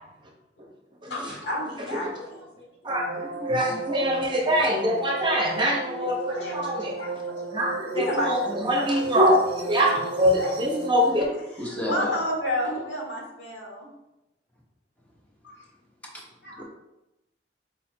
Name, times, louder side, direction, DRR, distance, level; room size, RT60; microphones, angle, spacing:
voice 1, 1.1-2.7 6.0-7.4 7.9-10.1 10.3-10.5 11.3-13.9 15.4-15.6 16.4-16.6, left 1 dB, 80° left, -1 dB, 1.3 m, -32 dB
voice 2, 2.8-6.9 7.5-11.3, equal, 25° right, -1 dB, 0.8 m, -24 dB
sound 1, 2.9-11.1, right 4 dB, 60° right, 0.5 m, -35 dB
voice 3, 11.5-12.2 16.1-16.2 16.6-16.7, left 1 dB, 10° left, -3 dB, 0.9 m, -31 dB
4.3 x 2.7 x 4.3 m, 0.91 s
head